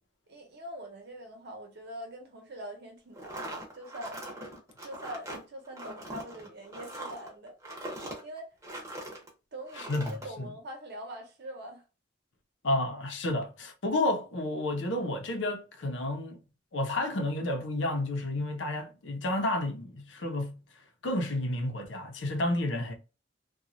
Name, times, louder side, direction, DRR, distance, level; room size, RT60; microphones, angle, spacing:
voice 1, 0.3-4.2 4.8-7.6 8.2-8.5 9.5-11.8, right 1 dB, 60° right, 0.9 m, -43 dB
sound 1, 3.1-9.3 9.7-10.3, right 1 dB, 15° right, 0.8 m, -41 dB
voice 2, 9.8-10.5 12.6-16.4 16.7-20.6 21.0-22.9, left 1 dB, 85° left, 0.7 m, -31 dB
2.9 x 2.3 x 2.5 m
head